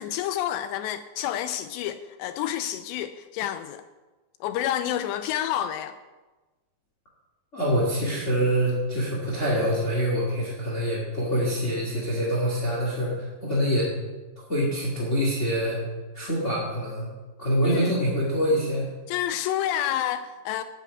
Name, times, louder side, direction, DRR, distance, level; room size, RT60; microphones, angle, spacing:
voice 1, 0.0-3.8 4.4-5.9 17.6-18.0 19.1-20.6, left 11 dB, 85° left, 2.6 m, -29 dB
voice 2, 7.5-13.9 14.3-15.8 16.1-17.1 17.4-18.8, equal, 30° left, 1.3 m, -25 dB
9.3 x 8.3 x 8.4 m
omnidirectional pair, 5.1 m